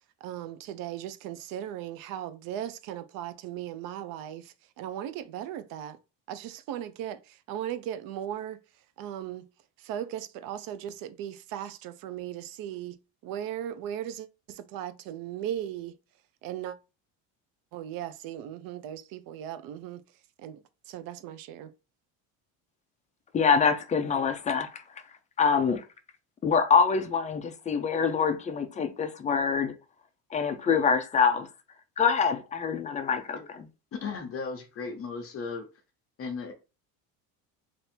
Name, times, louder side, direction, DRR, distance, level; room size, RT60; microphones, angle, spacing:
voice 1, 0.2-6.0 6.3-8.6 9.0-9.5 9.8-16.0 16.4-16.8 17.7-20.0 20.4-21.7, right 11 dB, 60° right, 0.6 m, -37 dB
voice 2, 23.3-24.8 25.4-25.8 26.4-29.7 30.3-31.5 32.0-33.7, left 6 dB, 20° left, 0.5 m, -25 dB
voice 3, 33.9-35.7 36.2-36.5, left 5 dB, 35° left, 1.0 m, -36 dB
3.4 x 2.7 x 4.3 m
cardioid pair, 145°, 39 cm